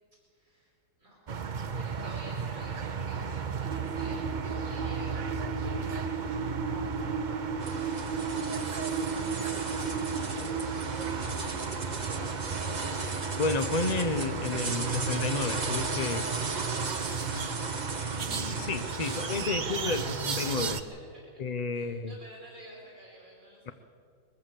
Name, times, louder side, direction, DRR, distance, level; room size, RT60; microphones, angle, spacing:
voice 1, 0.3-0.7 1.0-1.2 1.7-7.2 8.1-10.7 11.6-13.2 16.4-17.7 19.0-20.8 21.7-23.7, right 1 dB, 45° right, -4 dB, 5.4 m, -50 dB
sound 1, 1.3-20.8, right 5 dB, 65° right, 0.4 m, -35 dB
sound 2, 3.7-18.7, right 5 dB, 90° right, 1.8 m, -38 dB
sound 3, 7.6-19.5, right 3 dB, 25° right, 1.1 m, -37 dB
voice 2, 13.4-16.3 18.2-20.8 21.4-22.2, left 3 dB, 40° left, 10 dB, 0.6 m, -31 dB
22.5 x 15.0 x 7.7 m, 2.3 s
omnidirectional pair, 2.0 m